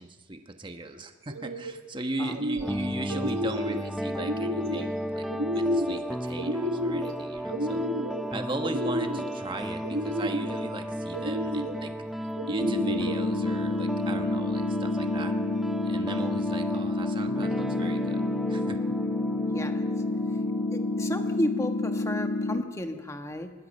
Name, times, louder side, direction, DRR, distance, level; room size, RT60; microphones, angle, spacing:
voice 1, 0.0-5.2 5.5-7.8 8.3-11.9 12.5-15.3 15.8-18.2 18.5-18.8, right 2 dB, 25° right, 6 dB, 1.2 m, -38 dB
sound 1, 1.2-1.7 2.1-2.8 3.1-3.8 4.2-4.9 5.3-6.0 6.4-7.2 7.5-8.2 8.6-9.4 9.8-10.6 11.1-11.8 12.4-13.2, equal, 85° right, 1.7 m, -31 dB
voice 2, 2.2-2.5 16.2-16.3 19.5-19.9 20.7-23.5, left 1 dB, 15° left, 5 dB, 1.4 m, -33 dB
sound 2, 2.6-21.5, equal, ahead, 0.5 m, -35 dB
sound 3, 12.6-22.6, left 2 dB, 85° left, 1.2 m, -29 dB
24.5 x 20.0 x 5.4 m, 1.5 s
head